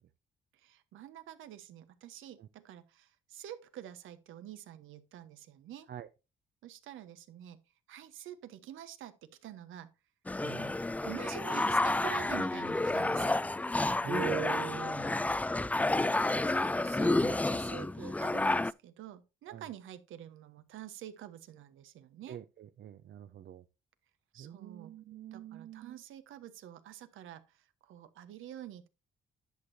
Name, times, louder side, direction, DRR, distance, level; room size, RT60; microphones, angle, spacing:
voice 1, 0.5-5.9 6.6-7.6 7.9-9.9 10.5-13.4 15.9-22.4 24.3-24.9 25.3-28.9, right 11 dB, 80° right, 1.1 m, -47 dB
sound 1, 10.3-18.7, left 2 dB, 5° left, 0.3 m, -30 dB
voice 2, 14.0-15.3 17.2-17.3 19.5-19.6 22.3-23.6 24.4-26.0, right 10 dB, 60° right, 0.7 m, -42 dB
10.5 x 6.5 x 2.7 m
cardioid pair, 90°, 20 cm